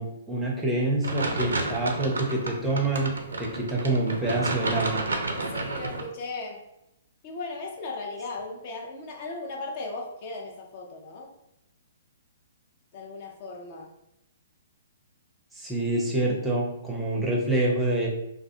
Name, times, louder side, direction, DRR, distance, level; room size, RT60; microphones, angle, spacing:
voice 1, 0.0-3.1 3.4-5.1 15.5-18.1, right 2 dB, 10° right, -2 dB, 0.5 m, -26 dB
sound 1, 1.0-6.0, right 2 dB, 70° right, 0.4 m, -31 dB
voice 2, 5.3-6.6 7.2-11.3 12.9-13.9, left 3 dB, 40° left, 0 dB, 0.4 m, -37 dB
2.4 x 2.1 x 2.6 m, 0.85 s
figure-of-eight pair, 120°, 0 cm